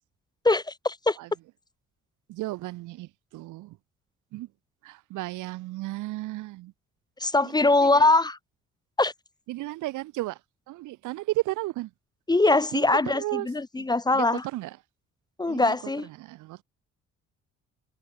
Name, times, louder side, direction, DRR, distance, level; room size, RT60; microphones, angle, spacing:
voice 1, 0.4-1.2 7.2-8.4 9.0-9.1 12.3-14.4 15.4-16.1, left 2 dB, 15° left, 0.7 m, -22 dB
voice 2, 2.3-3.8 4.3-4.5 4.8-6.7 7.4-8.1 9.5-10.4 10.7-11.9 12.7-13.5 13.8-14.8 15.5-15.8 16.0-16.6, right 18 dB, 85° right, 0.7 m, -34 dB
cardioid pair, 90°, 30 cm